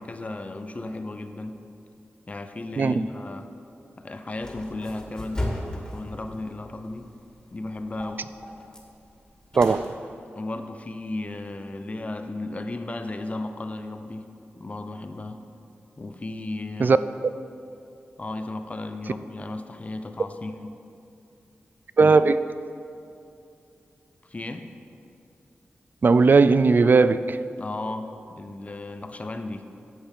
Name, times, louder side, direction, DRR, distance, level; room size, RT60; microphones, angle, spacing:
voice 1, 0.0-1.6 2.3-3.5 4.0-5.5 5.9-7.1 7.5-8.3 10.4-14.3 14.6-15.4 16.0-17.0 18.2-20.8 24.3-24.7 27.6-29.8, left 2 dB, 35° left, 0.7 m, -35 dB
voice 2, 2.8-3.1 9.6-9.9 16.8-17.0 22.0-22.4 26.0-27.4, right 4 dB, 50° right, 0.4 m, -17 dB
sound 1, 4.3-9.9, left 1 dB, 15° left, 2.3 m, -37 dB
11.5 x 7.9 x 5.4 m
wide cardioid pair, 80°, 4 cm